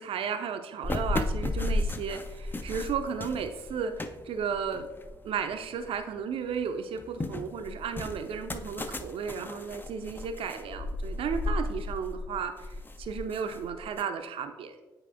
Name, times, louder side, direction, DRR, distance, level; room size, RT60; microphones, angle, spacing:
voice 1, 0.0-3.9 4.2-4.9 5.2-14.8, right 6 dB, 55° right, 6 dB, 0.6 m, -34 dB
sound 1, 0.8-6.0 6.4-14.0, left 2 dB, 15° left, 0.5 m, -34 dB
9.6 x 4.8 x 2.5 m, 1.2 s
figure-of-eight pair, 40°, 11 cm